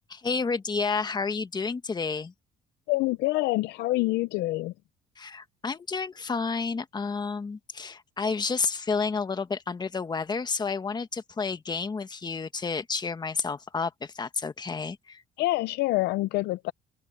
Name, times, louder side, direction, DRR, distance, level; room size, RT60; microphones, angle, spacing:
voice 1, 0.1-2.3 5.2-15.2, left 4 dB, 25° left, 1.4 m, -30 dB
voice 2, 2.9-4.7 15.4-16.7, left 19 dB, 85° left, 0.5 m, -26 dB
open air
cardioid pair, 110°, 17 cm